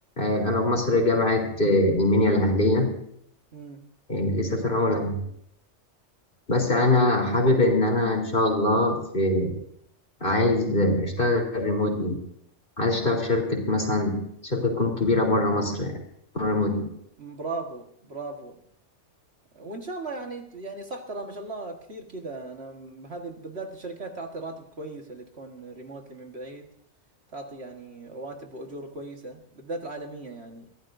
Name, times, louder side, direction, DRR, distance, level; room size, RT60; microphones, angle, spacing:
voice 1, 0.2-2.9 4.1-5.2 6.5-9.5 10.2-12.2 12.8-16.0 16.3-16.9, left 2 dB, 45° left, 1 dB, 3.8 m, -23 dB
voice 2, 17.2-18.6 19.5-26.7 27.3-30.9, right 2 dB, 60° right, 3 dB, 1.9 m, -38 dB
23.5 x 15.5 x 2.7 m, 0.68 s
omnidirectional pair, 1.3 m